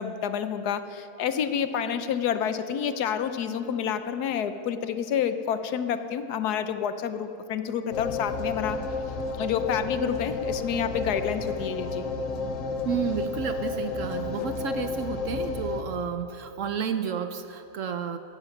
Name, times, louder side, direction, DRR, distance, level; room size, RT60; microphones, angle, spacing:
voice 1, 0.0-8.8 9.4-12.0, left 8 dB, 75° left, 10 dB, 1.3 m, -29 dB
sound 1, 7.9-15.8, left 3 dB, 55° left, 1.3 m, -31 dB
voice 2, 12.8-18.2, right 7 dB, 60° right, 9 dB, 0.9 m, -31 dB
16.0 x 12.5 x 6.0 m, 2.9 s
omnidirectional pair, 1.7 m